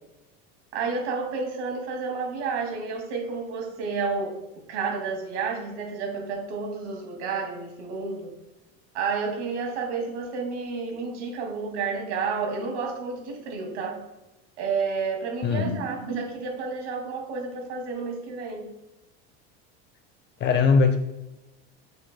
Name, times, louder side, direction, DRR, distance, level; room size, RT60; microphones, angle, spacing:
voice 1, 0.7-4.3 4.7-8.3 8.9-14.0 14.6-18.6, right 4 dB, 90° right, 1 dB, 2.3 m, -30 dB
voice 2, 15.4-15.8 20.4-21.0, left 5 dB, 35° left, 8 dB, 0.6 m, -20 dB
8.2 x 7.4 x 2.2 m, 0.99 s
supercardioid pair, 125°, 33 cm